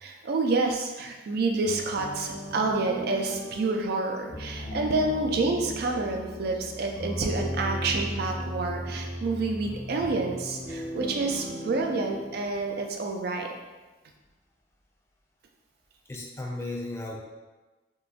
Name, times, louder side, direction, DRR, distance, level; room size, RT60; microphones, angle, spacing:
voice 1, 0.0-13.5, right 3 dB, 60° right, 2 dB, 0.4 m, -28 dB
sound 1, 1.6-13.3, equal, 85° right, 1.3 m, -37 dB
voice 2, 16.1-17.2, left 2 dB, 15° left, -1 dB, 0.3 m, -35 dB
3.8 x 2.2 x 2.4 m, 1.2 s
head